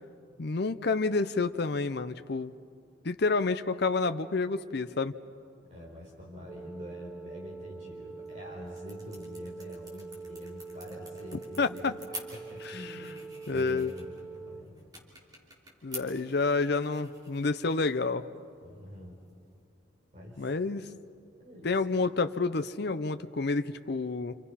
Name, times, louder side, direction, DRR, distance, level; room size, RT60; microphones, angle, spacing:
voice 1, 0.4-2.5 3.0-5.1 11.6-11.9 13.5-13.9 15.8-18.3 20.4-20.9 21.6-24.3, left 3 dB, 55° left, 10 dB, 0.6 m, -29 dB
voice 2, 5.7-11.8 12.3-13.2 13.5-14.8 18.6-19.2 20.1-20.5 21.4-21.8, left 1 dB, 35° right, -2 dB, 4.3 m, -45 dB
sound 1, 6.5-14.6, right 4 dB, 5° right, 0.8 m, -44 dB
sound 2, 8.1-19.6, right 1 dB, 20° right, 3.3 m, -50 dB
28.5 x 27.5 x 5.7 m, 2.3 s
head